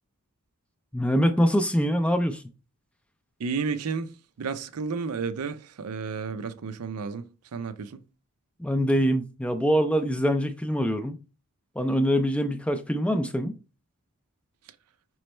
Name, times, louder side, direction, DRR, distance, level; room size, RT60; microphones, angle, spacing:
voice 1, 0.9-2.4 8.6-11.2 11.8-13.5, equal, 5° left, 0.3 m, -24 dB
voice 2, 3.4-7.3 7.5-8.0, right 5 dB, 90° right, 0.5 m, -32 dB
5.1 x 3.1 x 3.2 m
head